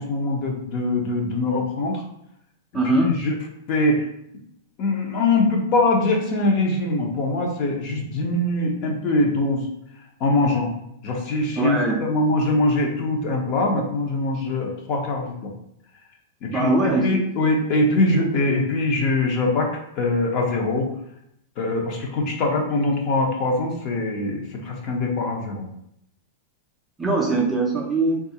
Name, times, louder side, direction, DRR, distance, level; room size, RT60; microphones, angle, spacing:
voice 1, 0.0-2.0 2.9-3.3 3.7-4.0 4.8-9.6 10.2-10.7 11.0-15.5 16.4-16.7 17.0-19.7 20.0-20.9 21.6-25.7, left 2 dB, 35° left, 1 dB, 0.6 m, -22 dB
voice 2, 2.7-3.1 11.6-12.0 16.5-17.5 27.0-28.2, right 2 dB, 10° right, -3 dB, 0.4 m, -22 dB
3.7 x 2.4 x 2.7 m, 0.75 s
supercardioid pair, 160°, 0 cm